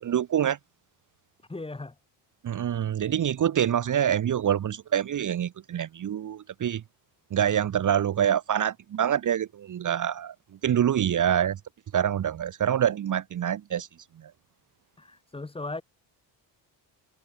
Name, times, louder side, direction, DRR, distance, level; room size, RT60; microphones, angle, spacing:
voice 1, 0.0-0.6 2.4-6.8 7.3-10.3 10.6-11.6 11.9-13.9, right 9 dB, 40° right, 1.0 m, -26 dB
voice 2, 1.5-1.9 11.3-11.5 15.0-15.8, left 2 dB, 10° left, 1.6 m, -37 dB
cardioid pair, 155°, 47 cm